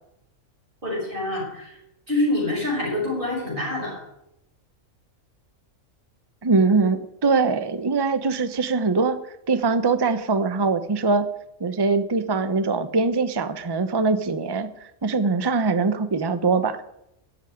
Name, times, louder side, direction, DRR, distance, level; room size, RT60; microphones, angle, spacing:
voice 1, 0.8-1.8 2.1-4.0, left 1 dB, 40° right, -3 dB, 6.2 m, -26 dB
voice 2, 6.4-9.2 9.5-11.3 11.6-16.8, right 4 dB, 20° right, 11 dB, 0.7 m, -22 dB
13.0 x 8.2 x 9.4 m, 0.82 s
omnidirectional pair, 1.4 m